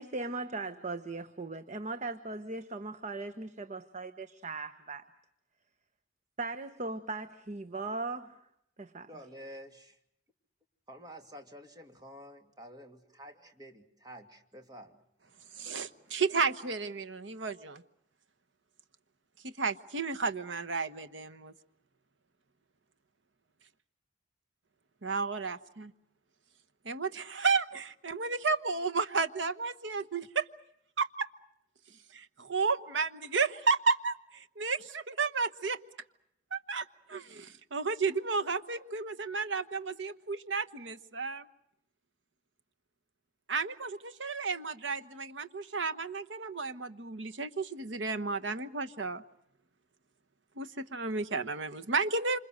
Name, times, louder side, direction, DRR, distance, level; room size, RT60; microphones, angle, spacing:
voice 1, 0.0-5.1 6.4-8.4 8.8-9.1, right 3 dB, 40° right, 1.1 m, -38 dB
voice 2, 9.1-10.0 10.9-15.0, equal, 20° right, 2.7 m, -49 dB
voice 3, 15.6-17.8 19.4-21.5 25.0-25.9 26.8-30.5 31.0-31.3 32.1-35.8 36.5-41.4 43.5-49.2 50.6-52.4, right 4 dB, 75° right, 1.2 m, -32 dB
27.5 x 26.5 x 6.5 m
head